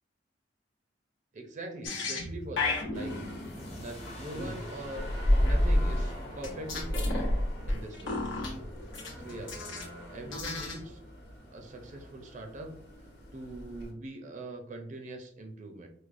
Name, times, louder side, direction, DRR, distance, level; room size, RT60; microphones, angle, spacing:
voice 1, 1.3-3.1 3.7-7.3 7.6-8.3 9.2-9.5 10.1-11.0 11.5-12.7 13.3-15.9, right 2 dB, 40° right, 4 dB, 0.4 m, -42 dB
sound 1, 1.8-5.6 6.4-9.9 10.2-10.9, left 3 dB, 90° left, 0.9 m, -36 dB
sound 2, 2.9-13.9, equal, 65° left, 1.0 m, -33 dB
sound 3, 3.3-8.9, left 1 dB, 35° left, 0.8 m, -48 dB
4.6 x 2.1 x 2.5 m, 0.63 s
head